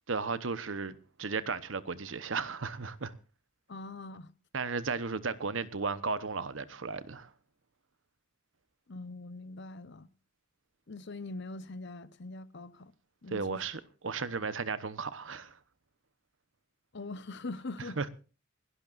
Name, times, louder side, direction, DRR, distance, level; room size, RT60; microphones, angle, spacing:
voice 1, 0.1-3.1 4.5-7.3 13.3-15.6 18.0-18.1, right 4 dB, 75° right, 1.0 m, -35 dB
voice 2, 3.7-4.3 8.9-10.1 10.9-12.9 13.2-13.7 16.9-18.0, left 2 dB, 60° left, 0.9 m, -42 dB
28.0 x 12.0 x 2.5 m
head